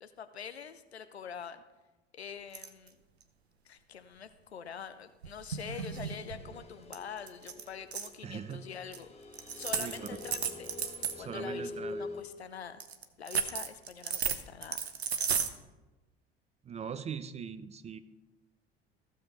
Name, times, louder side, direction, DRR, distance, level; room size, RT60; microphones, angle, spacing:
voice 1, 0.0-1.6 2.1-3.0 3.6-9.1 9.6-10.7 11.2-12.8 13.2-14.8 15.1-15.2, left 7 dB, 85° left, 11 dB, 0.5 m, -45 dB
sound 1, 2.5-2.9 5.2-6.6 6.9-7.0 7.3-8.1 8.9-9.0 9.3-11.2 12.8-15.5, right 7 dB, 85° right, 0.6 m, -34 dB
sound 2, 5.9-12.2, left 2 dB, 20° left, 1.2 m, -45 dB
voice 2, 8.2-8.6 9.8-10.2 11.2-12.1 16.6-18.0, right 7 dB, 20° right, 13 dB, 0.4 m, -41 dB
15.0 x 6.8 x 3.1 m, 1.1 s
figure-of-eight pair, 60°, 31 cm